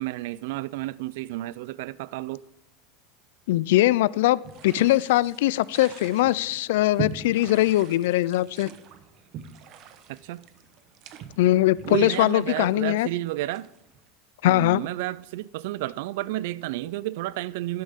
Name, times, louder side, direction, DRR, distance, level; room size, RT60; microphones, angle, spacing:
voice 1, 0.0-2.4 10.1-10.4 11.8-13.7 14.4-17.8, right 16 dB, 70° right, 0.3 m, -31 dB
voice 2, 3.5-8.7 11.4-13.1 14.4-14.8, left 16 dB, 75° left, 0.3 m, -21 dB
sound 1, 4.4-14.0, right 8 dB, 45° right, 1.0 m, -41 dB
12.5 x 10.5 x 3.6 m
supercardioid pair, 150°, 0 cm